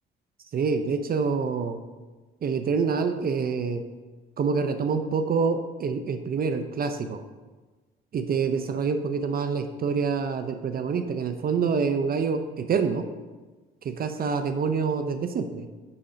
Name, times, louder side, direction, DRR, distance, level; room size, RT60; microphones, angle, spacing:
voice 1, 0.5-1.8 2.4-3.8 4.4-7.2 8.1-13.0 13.8-15.7, right 5 dB, 50° right, 8 dB, 0.6 m, -26 dB
9.9 x 3.8 x 5.0 m, 1.3 s
cardioid pair, 90°, 20 cm